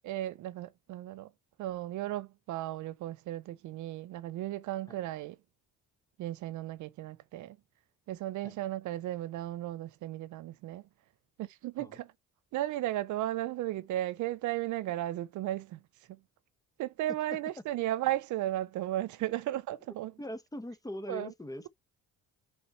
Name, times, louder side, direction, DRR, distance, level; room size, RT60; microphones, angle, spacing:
voice 1, 0.0-1.3 1.6-5.4 6.2-7.6 8.1-10.8 11.4-12.1 12.5-15.8 16.1-16.2 16.8-20.1 21.1-21.3, right 14 dB, 75° right, 0.5 m, -35 dB
voice 2, 20.2-21.7, left 1 dB, 10° left, 1.1 m, -41 dB
6.3 x 4.0 x 4.3 m
cardioid pair, 90°, 30 cm